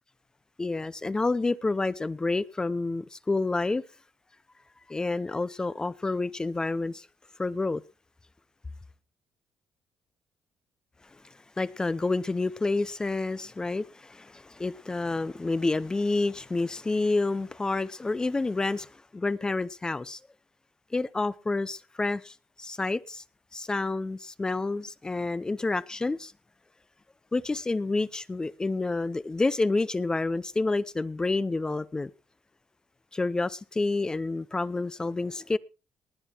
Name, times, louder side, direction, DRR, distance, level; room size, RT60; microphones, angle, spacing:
voice 1, 0.6-3.8 4.9-7.1 7.4-7.8 11.6-20.2 20.9-23.2 23.5-26.3 27.3-32.1 33.1-35.6, left 3 dB, 20° left, 0.6 m, -29 dB
19.5 x 7.9 x 4.5 m
cardioid pair, 85°, 4 cm